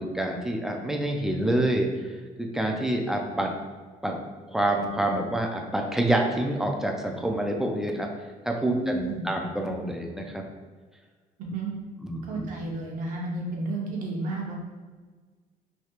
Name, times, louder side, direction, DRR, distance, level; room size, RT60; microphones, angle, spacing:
voice 1, 0.0-3.5 4.0-4.2 4.5-8.1 8.5-10.5 12.0-12.5, right 1 dB, 5° right, 1 dB, 0.3 m, -27 dB
voice 2, 8.6-9.3 11.4-11.7 12.3-14.6, right 2 dB, 60° right, -1 dB, 0.7 m, -31 dB
3.3 x 2.7 x 2.9 m, 1.4 s
cardioid pair, 160°, 15 cm